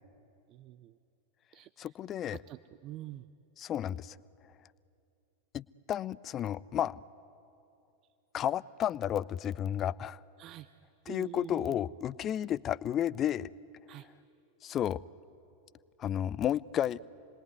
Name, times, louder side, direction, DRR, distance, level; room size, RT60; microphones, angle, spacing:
voice 1, 0.5-1.0 1.5-2.0 2.2-3.3 6.7-6.9 10.4-10.7 11.1-11.8 13.9-14.1, right 14 dB, 35° right, 14 dB, 0.6 m, -46 dB
voice 2, 1.8-2.4 3.6-4.2 5.5-7.0 8.3-10.2 11.1-13.5 14.6-15.0 16.0-17.0, left 10 dB, 30° left, 21 dB, 0.5 m, -32 dB
28.5 x 21.0 x 9.4 m, 2.7 s
figure-of-eight pair, 90°, 0 cm